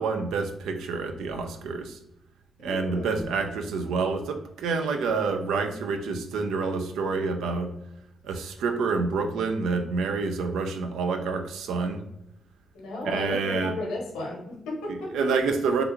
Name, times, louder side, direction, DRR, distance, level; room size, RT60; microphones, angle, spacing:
voice 1, 0.0-2.0 2.6-7.7 8.2-12.0 13.0-13.7 14.9-15.8, right 4 dB, 80° right, 6 dB, 0.3 m, -28 dB
voice 2, 2.6-3.3 12.7-15.1, left 1 dB, 85° left, 0 dB, 0.8 m, -34 dB
3.4 x 2.3 x 3.0 m, 0.83 s
supercardioid pair, 45°, 0 cm